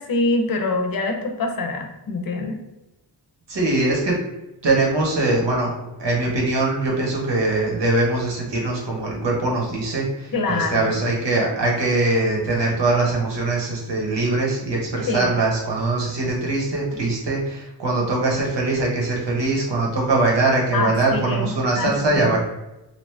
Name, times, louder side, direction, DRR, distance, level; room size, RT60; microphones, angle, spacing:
voice 1, 0.0-2.6 10.3-10.9 15.1-15.3 20.7-21.5 21.7-22.4, left 3 dB, 55° left, 3 dB, 0.6 m, -25 dB
voice 2, 3.5-4.2 4.6-5.7 6.0-22.4, right 2 dB, 75° right, -2 dB, 1.1 m, -22 dB
3.0 x 2.6 x 3.2 m, 0.95 s
wide cardioid pair, 95°, 42 cm